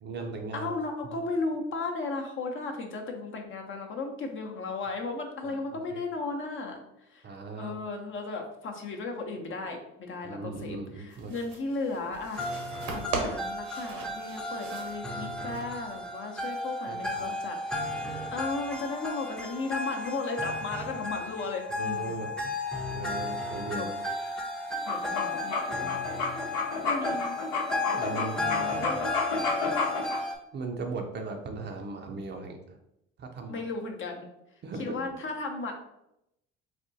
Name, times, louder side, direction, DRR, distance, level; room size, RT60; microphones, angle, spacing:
voice 1, 0.0-0.7 1.0-1.2 5.4-5.5 5.9-6.0 7.2-7.7 10.2-11.3 15.0-15.6 16.9-17.3 17.8-18.3 21.8-22.3 22.9-23.9 27.9-28.4 30.5-32.6 33.2-33.6 34.6-35.1, right 3 dB, 35° right, 4 dB, 0.5 m, -38 dB
voice 2, 0.5-7.3 7.6-12.5 12.9-22.1 23.7-23.9 24.9-26.0 26.3-27.4 28.2-29.1 33.5-34.3 34.8-35.7, left 3 dB, 40° left, 2 dB, 0.7 m, -35 dB
sound 1, 11.1-16.1, right 4 dB, 65° right, 0.8 m, -39 dB
sound 2, 12.4-30.3, left 2 dB, ahead, 0.6 m, -34 dB
sound 3, 24.7-30.2, left 4 dB, 70° left, 0.9 m, -30 dB
4.1 x 2.2 x 2.6 m, 0.83 s
hypercardioid pair, 65°, 30 cm